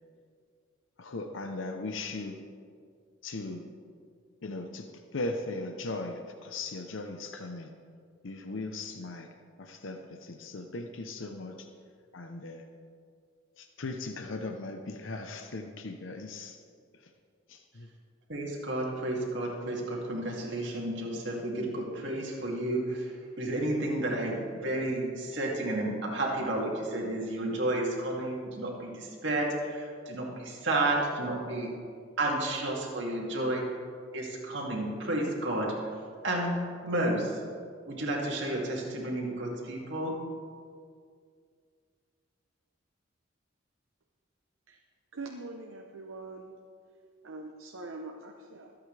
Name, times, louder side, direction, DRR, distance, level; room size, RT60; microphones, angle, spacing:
voice 1, 1.0-2.4 3.2-3.7 4.4-4.9 5.1-7.7 8.2-9.3 9.6-11.7 12.1-12.6 13.6-16.6 16.9-17.1 17.5-17.9, left 2 dB, 75° left, 5 dB, 0.8 m, -38 dB
voice 2, 18.3-31.7 32.2-33.6 34.1-35.9 36.2-36.5 36.8-37.4 37.9-40.2, right 1 dB, 65° right, -2 dB, 2.5 m, -31 dB
voice 3, 45.1-46.6 47.2-48.8, right 3 dB, 85° right, 2 dB, 0.8 m, -43 dB
23.0 x 8.6 x 3.3 m, 2.2 s
head